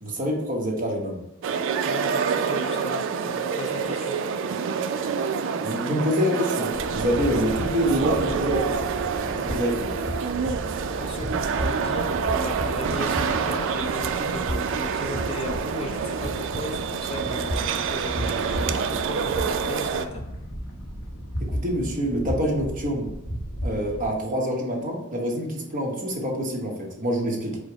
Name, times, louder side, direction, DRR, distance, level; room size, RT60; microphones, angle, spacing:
voice 1, 0.0-1.2 5.6-8.9 9.2-10.0 21.4-23.1 23.6-27.6, equal, 40° right, -1 dB, 0.9 m, -26 dB
sound 1, 1.4-20.1, right 6 dB, 60° right, 0.3 m, -27 dB
voice 2, 1.9-4.2 11.0-20.2, left 2 dB, 30° left, 2 dB, 0.4 m, -36 dB
sound 2, 6.7-24.1, equal, 65° left, 0.9 m, -34 dB
4.9 x 2.0 x 4.6 m, 0.90 s
head